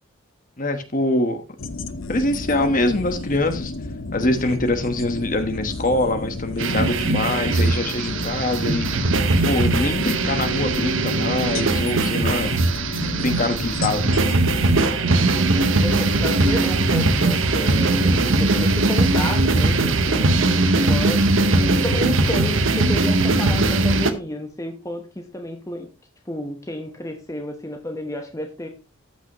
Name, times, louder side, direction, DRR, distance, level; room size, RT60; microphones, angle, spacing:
voice 1, 0.6-1.4 2.1-3.7 4.1-8.9 9.4-12.5 13.2-14.0, left 2 dB, 40° left, 1.2 m, -23 dB
sound 1, 1.6-14.8, left 2 dB, 70° left, 0.9 m, -32 dB
sound 2, 6.6-24.1, right 2 dB, 65° right, 1.0 m, -20 dB
voice 2, 15.5-20.3 20.7-25.9 26.3-28.7, left 1 dB, 15° left, 1.0 m, -31 dB
14.0 x 6.0 x 3.0 m
head